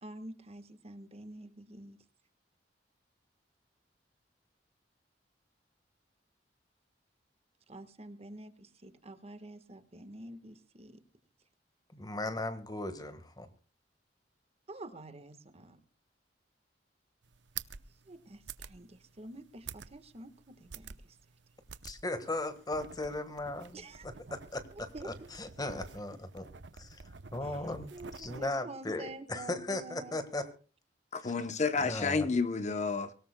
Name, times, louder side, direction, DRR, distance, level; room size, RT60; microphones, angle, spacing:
voice 1, 0.0-2.0 7.7-11.0 14.7-15.8 18.1-21.2 23.7-24.1 24.7-25.1 27.4-27.6 27.9-30.2, right 2 dB, 35° right, 10 dB, 1.4 m, -48 dB
voice 2, 11.9-13.5 21.8-26.5 26.8-27.0 27.3-30.5 31.2-31.3 31.8-32.2, left 2 dB, 20° left, 10 dB, 1.5 m, -37 dB
sound 1, 17.2-28.5, right 6 dB, 80° right, 0.7 m, -49 dB
voice 3, 31.1-33.1, left 4 dB, 40° left, 10 dB, 0.8 m, -30 dB
24.0 x 17.5 x 2.2 m, 0.36 s
head